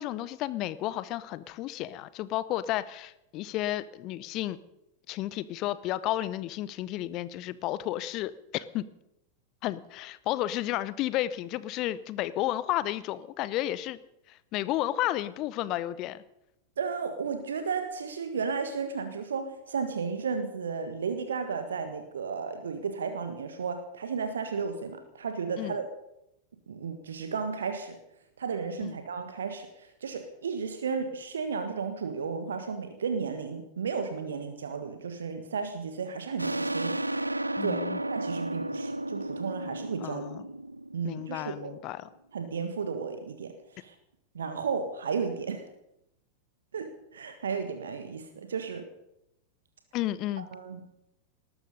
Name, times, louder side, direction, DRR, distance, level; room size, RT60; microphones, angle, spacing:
voice 1, 0.0-4.6 5.1-8.9 9.6-14.0 14.3-16.2 25.6-25.8 28.8-28.9 37.6-38.0 40.0-40.4 41.0-42.1 49.9-50.5, left 14 dB, 40° left, 17 dB, 0.8 m, -32 dB
voice 2, 16.8-25.9 26.7-28.0 28.4-40.3 40.9-41.8 42.3-43.9 44.3-45.7 46.7-48.9 50.4-50.8, right 5 dB, 65° right, 8 dB, 1.5 m, -34 dB
sound 1, 36.4-41.7, right 1 dB, 85° right, 0.5 m, -33 dB
19.0 x 13.0 x 5.4 m, 0.84 s
figure-of-eight pair, 90°, 0 cm